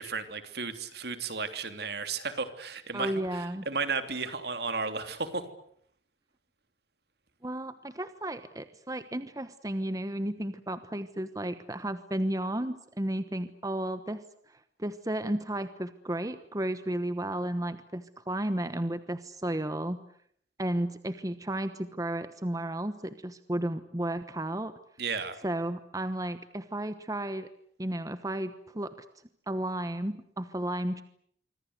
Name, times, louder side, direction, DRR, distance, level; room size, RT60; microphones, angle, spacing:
voice 1, 0.0-5.4 25.0-25.4, right 4 dB, 60° right, 9 dB, 3.1 m, -34 dB
voice 2, 2.9-3.7 7.4-20.0 20.6-24.7 25.4-27.5 27.8-28.9 29.5-31.0, right 1 dB, 20° right, 11 dB, 1.1 m, -33 dB
26.5 x 24.5 x 8.1 m, 0.67 s
head